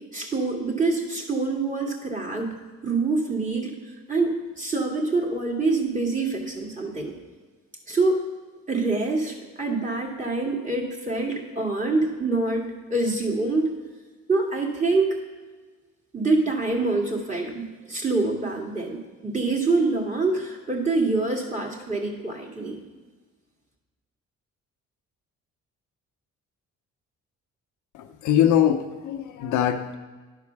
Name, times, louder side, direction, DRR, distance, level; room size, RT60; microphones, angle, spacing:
voice 1, 0.1-3.8 4.1-7.1 7.9-8.2 8.7-13.7 14.3-15.2 16.1-22.8, right 3 dB, 25° right, -1 dB, 2.2 m, -25 dB
voice 2, 27.9-29.9, left 10 dB, 75° left, 7 dB, 0.7 m, -22 dB
11.5 x 4.7 x 6.0 m, 1.3 s
cardioid pair, 90°, 30 cm